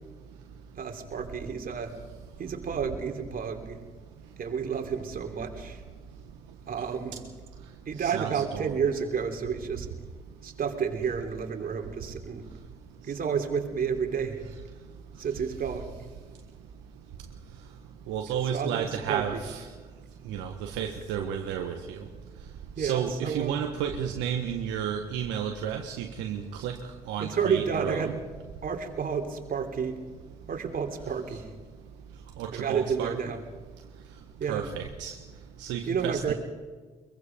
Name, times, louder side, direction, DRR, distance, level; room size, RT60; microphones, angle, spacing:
voice 1, 0.8-1.9 2.4-3.8 4.4-5.8 6.7-7.2 7.9-9.9 10.4-12.4 13.0-14.4 15.2-15.9 18.5-19.4 22.8-23.6 27.2-28.1 28.6-30.0 30.5-31.4 32.5-33.4 34.4-34.6 35.9-36.3, right 6 dB, 50° right, 4 dB, 3.4 m, -30 dB
voice 2, 8.0-8.8 18.1-19.6 20.3-22.0 22.8-26.8 27.1-28.1 32.4-33.1 34.5-35.1 35.6-36.3, right 8 dB, 70° right, 3 dB, 1.5 m, -32 dB
24.0 x 22.5 x 5.3 m, 1.4 s
hypercardioid pair, 50°, 19 cm